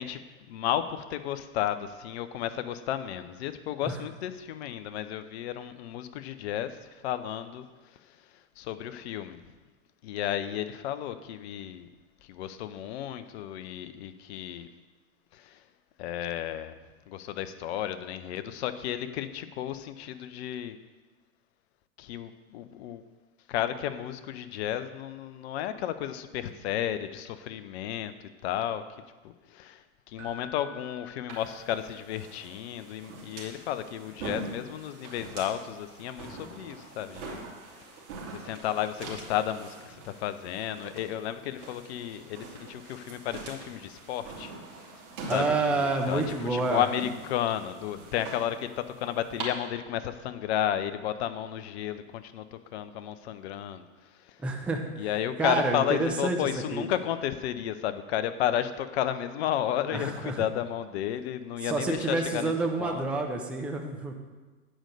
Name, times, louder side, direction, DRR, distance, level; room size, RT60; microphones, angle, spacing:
voice 1, 0.0-7.7 8.1-8.2 8.6-9.4 10.0-11.9 12.2-14.7 15.3-15.6 16.0-16.8 17.1-20.8 22.0-23.0 23.5-28.1 28.4-28.8 29.2-37.4 37.8-38.0 38.3-44.5 45.3-53.8 54.2-54.4 55.0-62.5 62.8-63.0, left 11 dB, 50° left, 11 dB, 0.7 m, -33 dB
Keyboard (musical), 30.2-32.1 35.4-35.5, left 4 dB, 30° right, 1.7 m, -49 dB
sound 1, 31.3-49.4, right 3 dB, 50° right, 2.8 m, -44 dB
voice 2, 45.3-46.8 54.4-54.8 55.4-56.4 56.7-56.9 59.9-60.4 61.6-64.2, right 3 dB, 5° right, 2 dB, 0.3 m, -28 dB
8.8 x 5.3 x 6.6 m, 1.3 s
hypercardioid pair, 105°, 42 cm